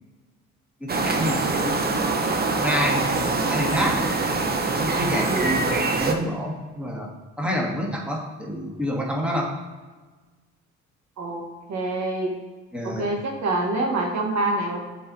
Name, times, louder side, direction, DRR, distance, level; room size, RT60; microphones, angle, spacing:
voice 1, 0.8-2.1 2.6-4.1 4.8-7.1 7.4-9.5 12.7-13.1, equal, 5° right, -2 dB, 1.5 m, -28 dB
sound 1, 0.9-6.1, right 3 dB, 30° right, 0.8 m, -24 dB
voice 2, 5.3-5.6 11.2-11.4 11.7-12.3 12.8-14.8, right 2 dB, 65° right, 0 dB, 1.5 m, -26 dB
7.5 x 4.1 x 4.1 m, 1.3 s
cardioid pair, 90°, 30 cm